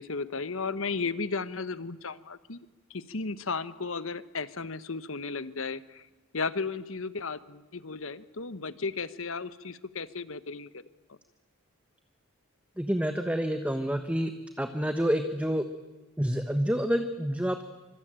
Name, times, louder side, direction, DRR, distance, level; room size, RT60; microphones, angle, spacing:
voice 1, 0.0-6.0 6.3-10.8 11.1-11.2, left 4 dB, 70° left, 14 dB, 1.2 m, -35 dB
voice 2, 12.8-14.3 14.6-15.6 16.2-17.6, equal, 5° right, 7 dB, 1.3 m, -28 dB
26.0 x 25.5 x 9.0 m, 1.1 s
head